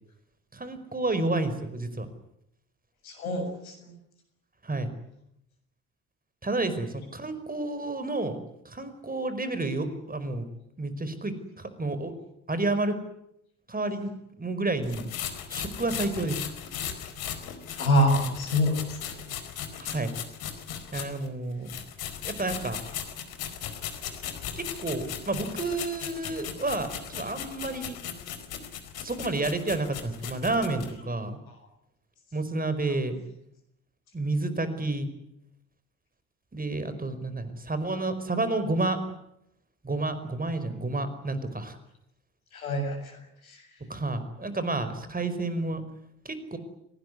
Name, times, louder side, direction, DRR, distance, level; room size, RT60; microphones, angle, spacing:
voice 1, 0.5-2.1 4.6-4.9 6.4-8.4 8.7-10.5 10.8-12.1 12.5-12.9 13.7-14.1 14.4-15.1 15.5-16.4 19.7-20.1 20.9-21.7 22.2-22.8 24.6-28.0 29.0-31.4 32.3-33.2 34.1-35.1 36.5-39.0 39.8-41.8 43.9-45.8 46.3-46.6, right 2 dB, 20° right, 11 dB, 5.2 m, -30 dB
voice 2, 3.0-3.9 17.7-19.2 31.5-31.6 42.5-43.7, equal, 90° left, 4 dB, 7.2 m, -27 dB
sound 1, 14.8-21.3 21.7-30.9, left 9 dB, 60° left, 4.5 m, -37 dB
26.0 x 19.0 x 9.8 m, 0.78 s
hypercardioid pair, 60°, 41 cm